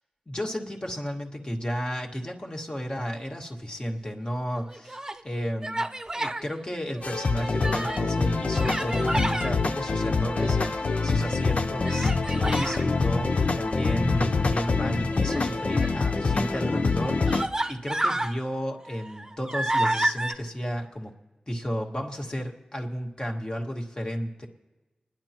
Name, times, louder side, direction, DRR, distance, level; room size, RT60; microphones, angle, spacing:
voice 1, 0.3-5.0 5.2-5.8 6.1-21.1 21.5-24.5, equal, 35° left, 1 dB, 1.9 m, -33 dB
Human voice, 4.6-5.2 5.6-6.4 6.9-8.1 8.5-9.5 10.1-10.9 11.8-12.8 15.1-16.0 16.7-16.8 17.3-18.3 18.8-20.3, right 1 dB, 25° right, 0.8 m, -30 dB
sound 1, 7.0-17.5, left 4 dB, 60° left, 0.6 m, -25 dB
28.5 x 10.5 x 3.0 m, 1.2 s
cardioid pair, 40°, 3 cm